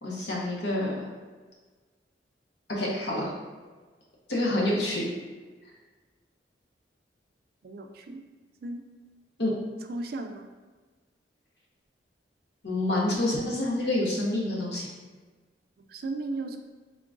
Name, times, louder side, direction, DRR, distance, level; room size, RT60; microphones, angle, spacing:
voice 1, 0.0-0.9 2.7-3.3 4.3-5.1 9.4-9.5 12.6-14.9, left 1 dB, 70° left, -3 dB, 1.0 m, -27 dB
voice 2, 7.6-8.2 8.6-8.8 9.9-10.5 15.8-16.6, right 2 dB, 55° right, 5 dB, 0.4 m, -35 dB
3.7 x 2.4 x 3.7 m, 1.4 s
head